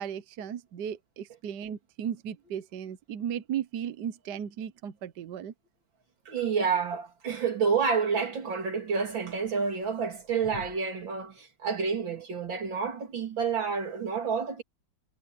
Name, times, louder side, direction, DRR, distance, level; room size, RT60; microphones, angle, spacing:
voice 1, 0.0-5.5, right 9 dB, 65° right, 1.4 m, -36 dB
voice 2, 6.3-14.6, right 5 dB, 90° right, 3.7 m, -29 dB
omnidirectional pair, 2.0 m